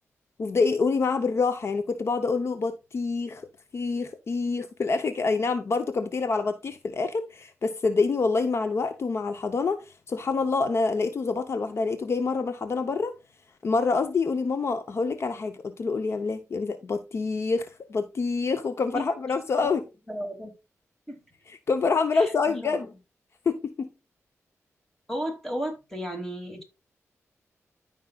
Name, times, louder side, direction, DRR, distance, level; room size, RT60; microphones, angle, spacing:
voice 1, 0.4-3.5 3.7-9.8 10.1-13.1 13.6-19.8 21.7-22.9 23.5-23.9, left 4 dB, 55° left, 0.8 m, -26 dB
voice 2, 20.1-20.5 21.1-21.2 22.1-22.9 25.1-26.6, equal, 5° left, 2.6 m, -34 dB
13.5 x 5.3 x 2.4 m
wide cardioid pair, 110°, 5 cm